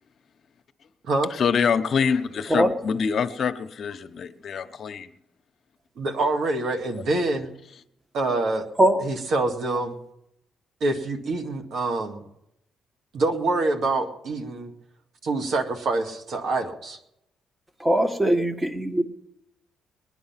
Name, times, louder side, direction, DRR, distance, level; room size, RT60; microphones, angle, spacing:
voice 1, 1.4-5.1, left 6 dB, 55° left, 1.0 m, -25 dB
voice 2, 6.0-7.5 8.1-8.7 9.0-10.0 10.8-12.2 13.1-14.7 15.2-17.0, right 2 dB, 65° right, 2.1 m, -26 dB
voice 3, 17.8-19.0, right 1 dB, 15° right, 1.6 m, -21 dB
21.5 x 10.0 x 5.8 m
cardioid pair, 90°, 0 cm